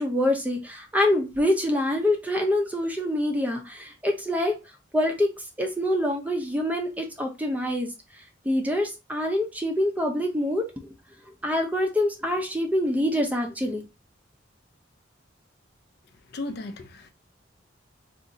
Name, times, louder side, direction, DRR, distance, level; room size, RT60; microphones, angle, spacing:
voice 1, 0.0-4.6 4.9-5.3 5.6-7.9 8.4-10.7 11.4-13.8, left 1 dB, 10° right, 0.5 m, -25 dB
voice 2, 16.3-17.1, left 2 dB, 55° left, 0.4 m, -35 dB
2.6 x 2.5 x 3.8 m
head